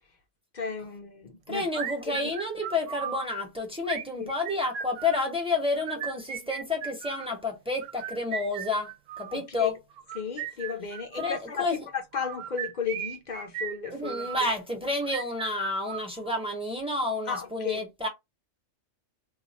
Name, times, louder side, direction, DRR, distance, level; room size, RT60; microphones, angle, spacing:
voice 1, 0.5-1.7 2.1-2.3 4.2-4.3 9.3-9.7 10.1-14.3 17.3-17.8, left 6 dB, 45° left, 0.6 m, -34 dB
voice 2, 1.5-8.9 9.2-9.7 11.2-11.9 13.9-18.1, left 2 dB, 5° right, 0.7 m, -30 dB
sound 1, 1.7-3.3 3.8-5.3 5.8-7.3 7.8-9.4 10.0-11.4 12.1-14.4 15.0-16.5, right 8 dB, 75° right, 0.9 m, -37 dB
2.4 x 2.3 x 4.0 m
omnidirectional pair, 1.3 m